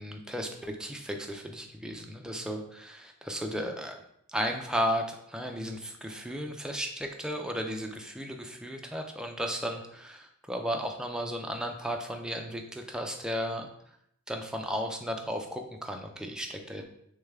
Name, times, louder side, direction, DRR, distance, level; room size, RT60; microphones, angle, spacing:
voice 1, 0.0-4.0 4.3-13.7 14.3-16.8, equal, 5° right, 3 dB, 0.4 m, -34 dB
6.4 x 2.2 x 3.5 m, 0.74 s
head